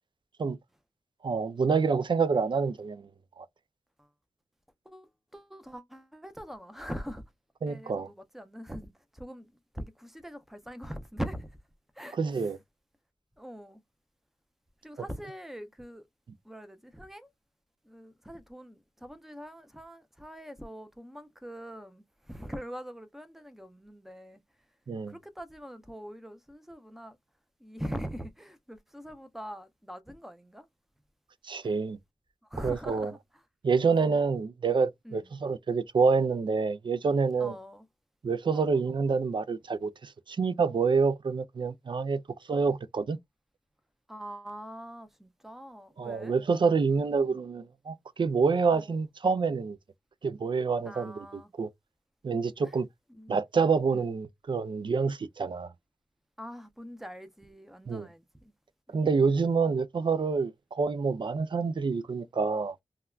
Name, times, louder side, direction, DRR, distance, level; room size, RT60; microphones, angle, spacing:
voice 1, 1.2-3.1 3.4-3.5 7.6-8.1 12.2-12.6 24.9-25.1 31.4-32.0 32.6-33.1 33.6-37.5 38.2-42.2 42.5-43.2 46.0-49.8 50.2-51.7 52.2-52.9 53.3-55.7 57.9-58.1 58.9-62.8, right 5 dB, 50° right, 0.4 m, -27 dB
voice 2, 4.9-7.2 7.7-11.6 11.9-12.5 13.4-13.8 14.8-16.1 16.4-17.3 17.8-24.4 25.1-27.2 27.6-30.7 31.6-31.7 32.5-33.2 35.0-35.4 37.4-37.9 38.5-38.8 44.1-46.4 48.7-49.0 50.9-51.5 52.6-52.8 53.1-53.4 53.9-54.1 56.4-58.5 58.9-59.0, equal, 5° right, 0.6 m, -43 dB
3.4 x 2.2 x 2.3 m
wide cardioid pair, 65°, 10 cm